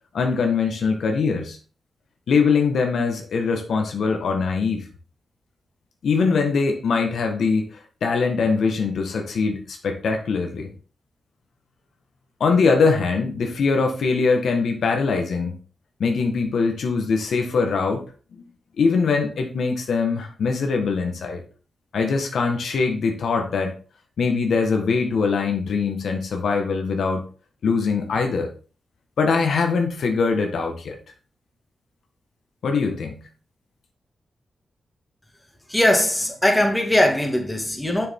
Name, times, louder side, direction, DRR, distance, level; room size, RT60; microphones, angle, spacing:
voice 1, 0.1-1.6 2.3-4.8 6.0-10.7 12.4-15.6 16.0-18.0 18.8-21.4 21.9-23.7 24.2-27.2 27.6-28.5 29.2-30.9 32.6-33.2, left 4 dB, 80° left, 1.5 m, -22 dB
voice 2, 35.7-38.1, left 1 dB, 10° left, 2.1 m, -20 dB
7.0 x 6.8 x 3.7 m
cardioid pair, 70°, 0 cm